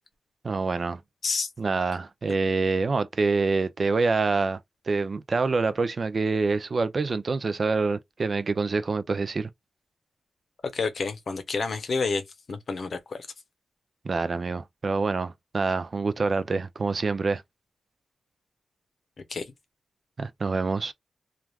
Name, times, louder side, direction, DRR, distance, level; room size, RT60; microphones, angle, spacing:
voice 1, 0.4-1.0 1.6-4.6 4.9-9.5 14.0-17.4 20.2-20.9, right 4 dB, 45° right, 0.4 m, -26 dB
voice 2, 10.7-12.2 12.5-13.2 19.3-19.4, left 4 dB, 60° left, 0.7 m, -29 dB
3.2 x 2.3 x 2.3 m
wide cardioid pair, 90°, 0 cm